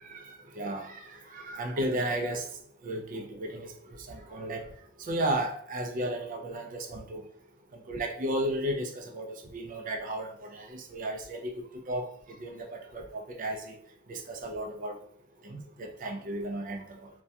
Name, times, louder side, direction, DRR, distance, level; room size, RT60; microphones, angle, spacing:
voice 1, 0.1-2.5 2.8-3.7 4.1-4.6 5.0-7.2 7.7-13.8 14.1-15.0 15.4-17.1, right 1 dB, 40° right, 4 dB, 0.4 m, -34 dB
2.2 x 2.2 x 2.6 m, 0.65 s
head